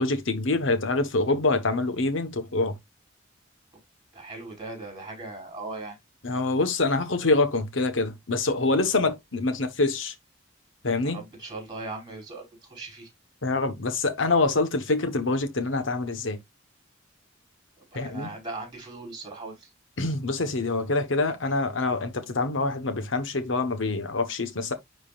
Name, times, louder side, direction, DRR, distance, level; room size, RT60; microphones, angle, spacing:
voice 1, 0.0-2.8 6.2-10.1 10.8-11.2 13.4-16.4 17.9-18.3 20.0-24.7, left 3 dB, 75° left, 1.1 m, -25 dB
voice 2, 4.1-6.0 11.0-12.4 12.7-13.1 17.9-19.7, right 2 dB, 20° right, 4.7 m, -38 dB
10.0 x 4.0 x 2.4 m
head